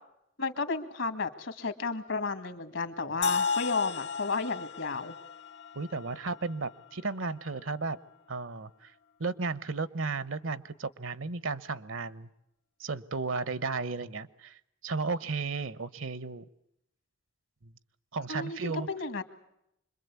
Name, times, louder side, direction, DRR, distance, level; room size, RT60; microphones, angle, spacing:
voice 1, 0.4-5.2 18.3-19.2, left 4 dB, 75° left, 9 dB, 1.9 m, -33 dB
sound 1, 3.2-7.1, left 5 dB, 60° left, 1.0 m, -34 dB
voice 2, 5.7-8.0 8.3-8.9 9.2-12.3 12.8-16.4 17.6-17.7 18.1-18.9, right 4 dB, 80° right, 16 dB, 1.0 m, -34 dB
26.0 x 22.0 x 8.3 m, 0.80 s
head